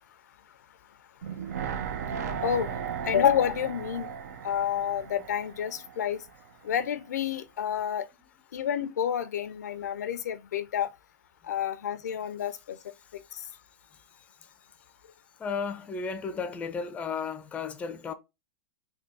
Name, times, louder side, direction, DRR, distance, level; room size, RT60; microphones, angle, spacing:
sound 1, 1.2-6.4 6.7-6.8, right 7 dB, 75° right, 0.6 m, -36 dB
voice 1, 2.4-2.7 3.0-4.1 4.4-6.2 6.6-8.1 8.5-10.9 11.5-12.8, left 9 dB, 90° left, 0.5 m, -29 dB
voice 2, 15.4-18.1, left 5 dB, 15° left, 0.4 m, -34 dB
3.5 x 2.2 x 3.9 m
hypercardioid pair, 140°, 9 cm